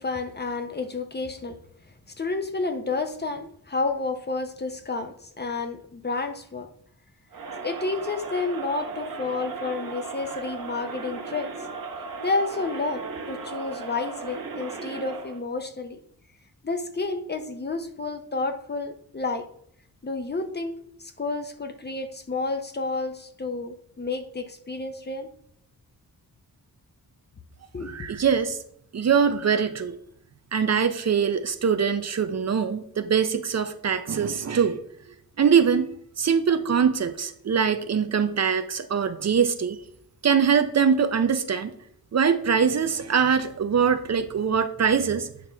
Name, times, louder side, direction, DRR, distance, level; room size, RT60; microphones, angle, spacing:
voice 1, 0.0-1.6 2.2-6.7 7.6-11.5 12.2-16.0 16.6-19.5 20.0-25.3 27.7-28.1, left 3 dB, 25° left, 7 dB, 0.6 m, -30 dB
Crowd, 7.3-15.4, right 4 dB, 65° right, 1.2 m, -36 dB
voice 2, 27.9-28.6 28.9-30.0 30.5-34.8 35.4-35.9 36.2-39.8 40.2-41.7 42.1-45.3, right 6 dB, 45° right, 9 dB, 0.5 m, -23 dB
9.2 x 5.8 x 3.4 m, 0.70 s
wide cardioid pair, 135°, 37 cm